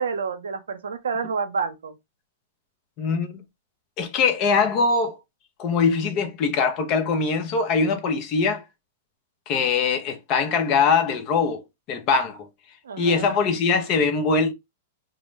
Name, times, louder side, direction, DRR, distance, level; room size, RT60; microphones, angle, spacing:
voice 1, 0.0-2.0 12.8-13.3, right 5 dB, 85° right, 0.5 m, -29 dB
voice 2, 3.0-3.4 4.0-5.2 5.6-8.6 9.5-11.6 11.9-12.5 13.0-14.5, left 5 dB, 45° left, 0.7 m, -22 dB
2.2 x 2.1 x 3.2 m
hypercardioid pair, 115°, 0 cm